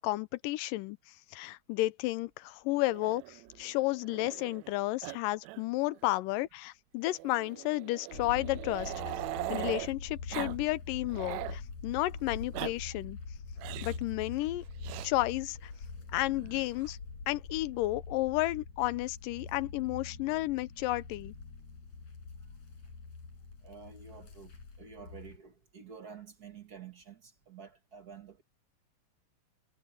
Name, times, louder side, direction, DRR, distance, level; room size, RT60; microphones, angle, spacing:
voice 1, 0.0-8.9 9.5-13.2 13.8-14.6 15.0-15.7 16.1-17.0 17.3-21.3, left 18 dB, 90° left, 2.3 m, -32 dB
Growling, 2.8-4.7 5.0-5.2 5.4-5.6 5.9-6.0 7.0-9.9 10.3-10.6 10.9-11.6 12.3-12.7 13.6-14.0 14.8-15.1 16.2-16.9, right 18 dB, 85° right, 1.6 m, -40 dB
sound 1, 8.1-25.4, left 4 dB, 55° left, 6.1 m, -44 dB
voice 2, 23.6-28.4, right 6 dB, 55° right, 1.1 m, -50 dB
omnidirectional pair, 3.8 m